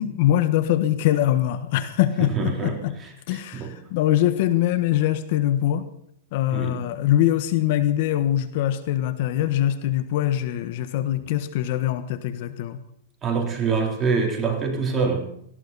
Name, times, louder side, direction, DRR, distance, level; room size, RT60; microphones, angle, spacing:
voice 1, 0.0-2.9 3.3-5.9 6.3-12.8, left 12 dB, 55° left, 11 dB, 1.3 m, -23 dB
voice 2, 2.2-3.7 6.5-6.8 13.2-15.3, right 5 dB, 20° right, 1 dB, 3.5 m, -26 dB
18.5 x 15.5 x 4.2 m, 0.72 s
hypercardioid pair, 135°, 0 cm